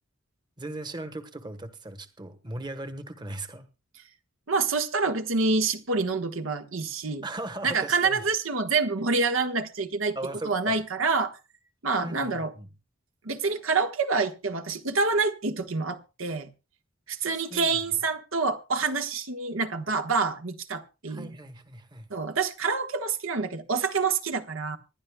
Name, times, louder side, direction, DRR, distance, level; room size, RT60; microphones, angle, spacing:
voice 1, 0.6-3.7 7.2-8.2 10.1-10.8 12.0-12.7 17.3-17.8 21.1-22.1, right 2 dB, 20° right, 1.1 m, -38 dB
voice 2, 4.5-7.2 7.6-10.2 10.4-11.4 11.8-12.5 13.2-16.5 17.1-21.3 22.1-24.8, right 4 dB, 85° right, 1.3 m, -27 dB
25.5 x 11.5 x 2.3 m
head